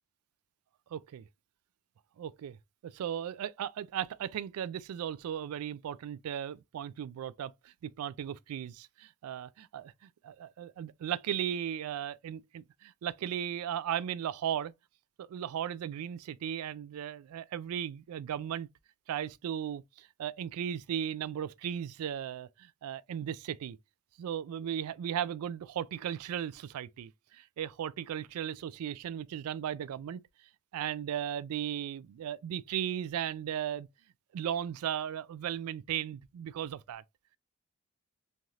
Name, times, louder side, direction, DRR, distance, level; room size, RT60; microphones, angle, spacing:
voice 1, 0.9-1.2 2.2-2.6 2.8-14.7 15.2-18.7 19.1-23.8 24.2-30.2 30.7-33.9 34.3-37.0, right 9 dB, 90° right, 0.3 m, -36 dB
3.2 x 2.4 x 2.7 m
head